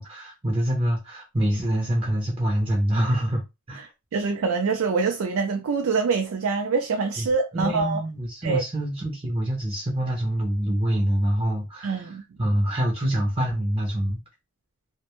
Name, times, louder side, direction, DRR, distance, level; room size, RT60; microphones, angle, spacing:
voice 1, 0.0-3.4 3.7-3.9 7.2-14.2, right 1 dB, 25° right, 0.5 m, -26 dB
voice 2, 4.1-8.0 8.4-8.6 11.8-12.2, right 4 dB, 80° right, 0.4 m, -25 dB
2.1 x 2.0 x 2.9 m
head